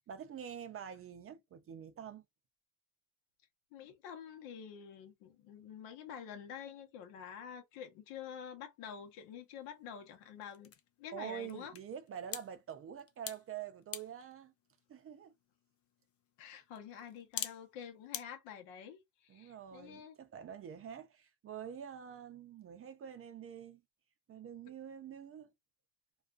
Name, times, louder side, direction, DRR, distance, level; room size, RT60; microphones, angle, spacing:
voice 1, 0.1-2.2 11.1-14.5 14.9-15.3 19.3-23.8 24.3-25.5, right 8 dB, 35° right, 0.4 m, -46 dB
voice 2, 3.7-10.7 11.0-11.7 16.4-20.2, left 8 dB, 80° left, 0.9 m, -48 dB
sound 1, 8.9-18.2, left 10 dB, 35° left, 0.4 m, -49 dB
2.4 x 2.3 x 2.4 m
supercardioid pair, 95°, 43 cm